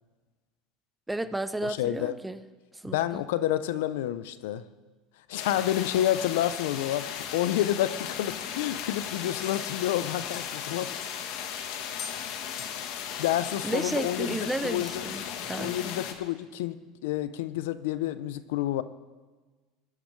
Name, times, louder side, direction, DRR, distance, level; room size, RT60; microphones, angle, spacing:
voice 1, 1.1-2.4 2.8-3.2 13.6-16.0, right 2 dB, 10° right, 13 dB, 0.6 m, -33 dB
voice 2, 1.6-2.2 2.8-4.6 5.3-10.9 12.3-12.6 13.2-15.0 15.5-18.8, left 12 dB, 85° left, 14 dB, 0.6 m, -29 dB
sound 1, 5.4-16.1, left 8 dB, 70° left, 1.3 m, -36 dB
sound 2, 8.4-8.9 9.2-9.7 10.0-11.5 12.0-12.2 12.6-12.8 13.1-13.2 13.8-13.9, left 5 dB, 45° left, 2.4 m, -45 dB
21.5 x 11.5 x 3.2 m, 1.3 s
supercardioid pair, 115°, 0 cm